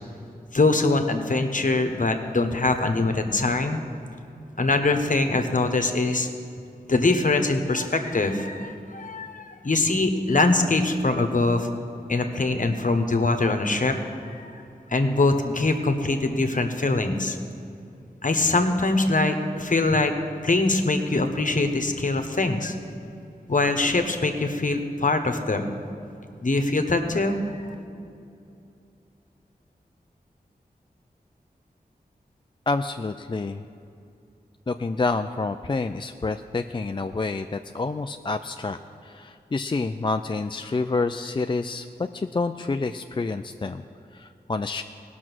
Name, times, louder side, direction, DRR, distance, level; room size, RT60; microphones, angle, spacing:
voice 1, 0.5-3.8 4.6-6.3 6.9-11.7 12.1-14.0 14.2-14.6 14.9-17.4 18.2-20.1 20.4-22.7 23.5-25.6 26.4-27.4, left 2 dB, 55° left, 6 dB, 1.1 m, -23 dB
voice 2, 32.7-33.6 34.7-38.8 39.0-41.9 42.1-43.8 44.1-44.8, left 3 dB, 30° left, 7 dB, 0.4 m, -28 dB
17.5 x 6.1 x 6.2 m, 2.6 s
cardioid pair, 45°, 16 cm